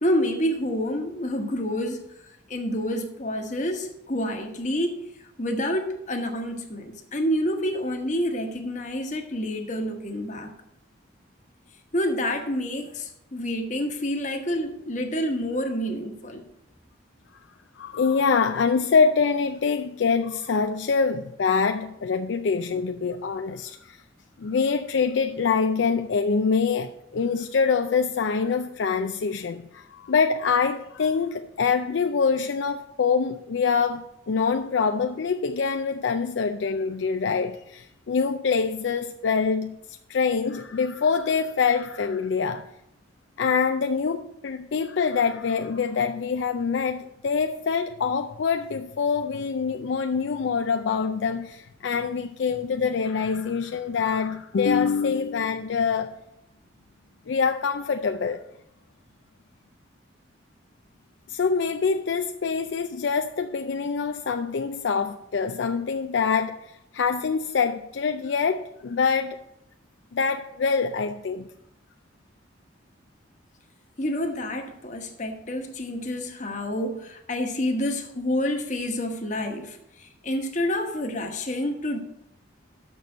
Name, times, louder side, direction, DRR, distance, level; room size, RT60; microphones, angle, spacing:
voice 1, 0.0-2.0 2.5-5.0 5.4-10.5 11.9-16.4 74.0-82.0, equal, 40° left, 4 dB, 1.2 m, -28 dB
voice 2, 17.8-24.0 24.4-39.7 40.1-42.7 43.4-56.1 57.3-58.4 61.3-66.6 66.9-69.4 70.1-71.5, left 5 dB, 65° left, 6 dB, 0.4 m, -25 dB
6.7 x 6.2 x 7.6 m, 0.82 s
head